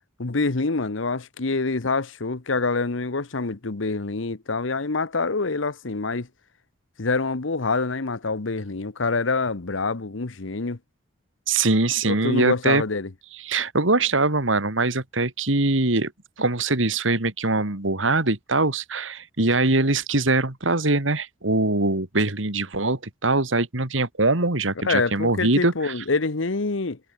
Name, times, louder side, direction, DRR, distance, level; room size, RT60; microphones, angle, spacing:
voice 1, 0.2-6.3 7.0-10.8 12.1-13.1 24.8-27.0, left 3 dB, 70° left, 1.1 m, -26 dB
voice 2, 11.5-12.8 13.4-16.1 16.4-25.9, right 2 dB, 75° right, 2.7 m, -22 dB
head